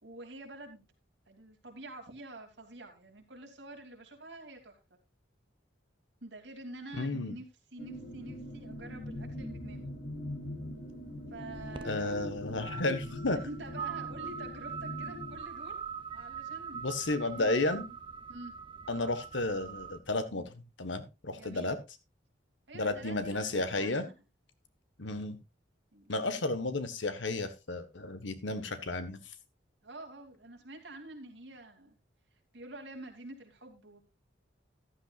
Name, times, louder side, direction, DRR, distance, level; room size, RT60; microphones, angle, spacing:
voice 1, 0.0-0.9 1.3-4.8 6.2-9.9 11.3-12.4 13.3-15.8 16.1-16.8 17.2-18.0 18.3-18.5 21.4-21.7 22.7-24.2 25.9-26.2 29.8-32.0 32.5-34.0, right 2 dB, 70° right, 3 dB, 3.0 m, -47 dB
voice 2, 6.9-7.4 11.8-13.4 16.7-17.9 18.9-21.8 22.7-24.0 25.0-25.4 26.1-29.2, left 2 dB, 85° left, 11 dB, 1.5 m, -33 dB
sound 1, 7.8-15.4, left 1 dB, 70° left, 6.2 m, -42 dB
sound 2, 11.5-20.0, right 6 dB, 25° right, 0.7 m, -43 dB
14.0 x 12.0 x 2.5 m, 0.25 s
head